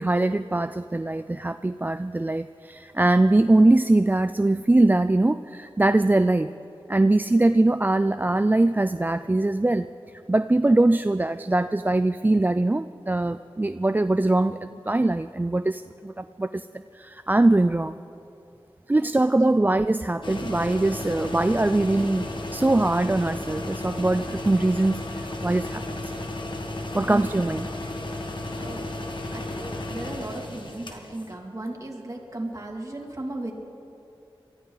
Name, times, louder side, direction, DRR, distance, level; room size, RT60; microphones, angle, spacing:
voice 1, 0.0-6.5 6.9-9.9 10.3-16.5 16.9-17.9 18.9-26.1 26.9-27.7, right 2 dB, 20° right, 11 dB, 0.3 m, -22 dB
voice 2, 19.0-19.3 19.6-19.7 27.0-27.5 28.6-28.9 29.3-33.5, right 1 dB, 35° right, -1 dB, 2.6 m, -36 dB
sound 1, 20.2-31.3, left 1 dB, 55° left, 1.6 m, -34 dB
23.0 x 14.0 x 4.0 m, 2.7 s
cardioid pair, 45°, 10 cm